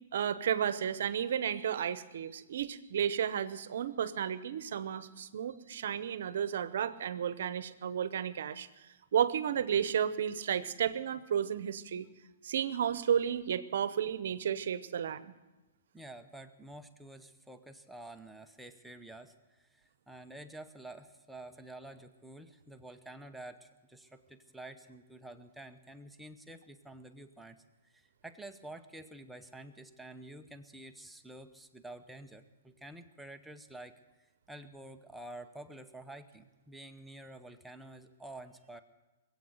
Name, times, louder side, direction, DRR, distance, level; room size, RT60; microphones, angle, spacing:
voice 1, 0.1-8.7 9.1-12.1 12.4-15.3, right 8 dB, 70° right, 14 dB, 0.9 m, -32 dB
voice 2, 15.9-27.6 27.8-33.9 34.5-38.8, right 1 dB, 5° right, 6 dB, 0.8 m, -49 dB
20.5 x 8.5 x 7.9 m, 1.1 s
hypercardioid pair, 145°, 0 cm